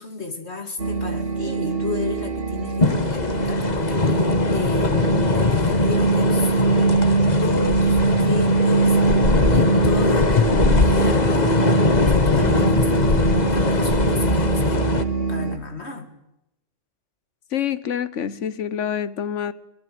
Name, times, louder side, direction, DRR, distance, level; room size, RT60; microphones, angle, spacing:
voice 1, 0.0-7.0 7.4-9.0 9.5-11.7 12.0-14.9 15.3-16.1, left 4 dB, 60° left, 7 dB, 2.9 m, -32 dB
sound 1, 0.8-15.6, right 4 dB, 50° right, 2.7 m, -23 dB
sound 2, 2.8-15.0, left 4 dB, 35° left, 1.5 m, -21 dB
voice 2, 17.5-19.5, left 9 dB, 75° left, 16 dB, 1.4 m, -26 dB
24.5 x 17.5 x 7.8 m, 0.85 s
omnidirectional pair, 1.2 m